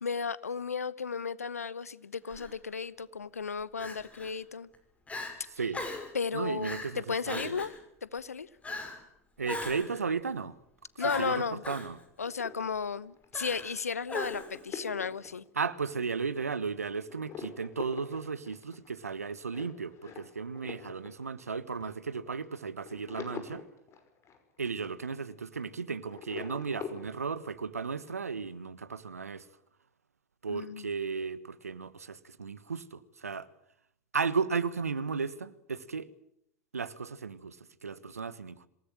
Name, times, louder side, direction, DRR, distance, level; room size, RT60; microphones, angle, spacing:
voice 1, 0.0-4.7 6.1-7.7 8.0-8.5 11.0-11.6 12.2-15.4 30.5-30.9, left 5 dB, 85° left, 1.0 m, -34 dB
Crying sobbing, 2.3-2.5 3.8-4.3 4.7-4.8 5.1-5.3 5.7-6.1 6.6-6.9 7.3-7.8 8.6-9.0 9.5-10.0 11.0-11.9 13.3-13.8 14.1-14.6, left 2 dB, 15° left, 6.2 m, -38 dB
voice 2, 5.5-5.8 6.3-7.6 9.4-10.6 10.9-12.0 15.5-23.6 24.6-29.4 30.4-33.5 34.1-36.1 36.7-38.7, right 5 dB, 85° right, 1.4 m, -35 dB
sound 1, 12.2-16.0 16.5-16.8 17.1-25.8 26.1-27.1, left 6 dB, 35° left, 5.7 m, -45 dB
27.0 x 18.0 x 9.0 m
figure-of-eight pair, 85°, 8 cm